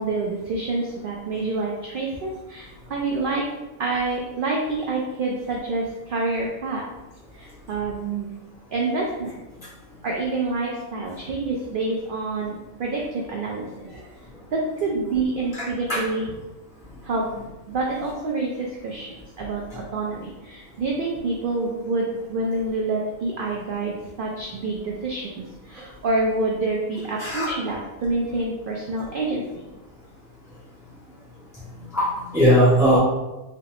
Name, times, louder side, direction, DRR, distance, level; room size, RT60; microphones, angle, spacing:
voice 1, 0.0-3.5 3.8-6.8 7.3-8.3 8.7-9.4 10.0-14.1 14.5-16.3 17.0-17.3 17.7-29.4, right 3 dB, 70° right, -1 dB, 0.5 m, -27 dB
voice 2, 15.5-16.0 27.2-27.5 31.9-33.0, equal, 5° right, -9 dB, 1.0 m, -19 dB
3.2 x 3.0 x 2.8 m, 1.0 s
omnidirectional pair, 1.4 m